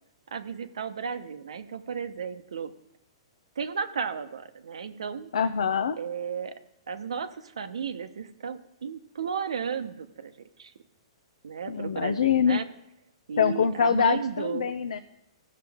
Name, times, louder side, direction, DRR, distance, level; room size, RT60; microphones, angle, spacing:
voice 1, 0.3-2.7 3.6-5.3 6.0-6.6 6.9-10.3 10.6-10.7 11.4-12.7 13.3-14.7, right 6 dB, 85° right, 10 dB, 0.8 m, -34 dB
voice 2, 5.3-6.0 11.7-12.6 13.4-15.0, left 7 dB, 85° left, 10 dB, 0.5 m, -24 dB
16.5 x 6.6 x 3.5 m, 0.83 s
hypercardioid pair, 140°, 3 cm